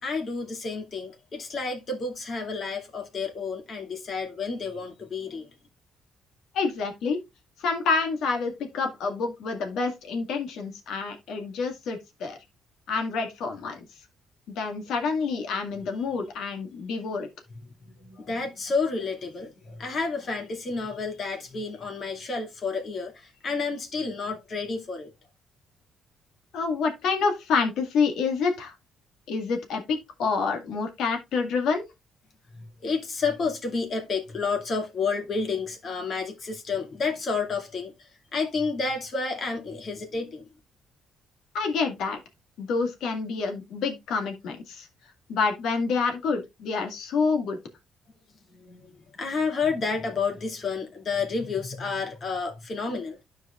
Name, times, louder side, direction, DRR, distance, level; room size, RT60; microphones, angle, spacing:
voice 1, 0.0-5.5 17.8-25.1 32.8-40.5 48.5-53.2, left 4 dB, 50° left, 2.4 m, -30 dB
voice 2, 6.5-7.2 7.6-12.4 12.9-13.9 14.5-17.3 26.5-28.7 29.3-31.8 41.5-42.2 42.6-44.9 45.3-47.6, left 4 dB, 80° left, 1.9 m, -27 dB
12.5 x 4.7 x 2.4 m
cardioid pair, 90°, 0 cm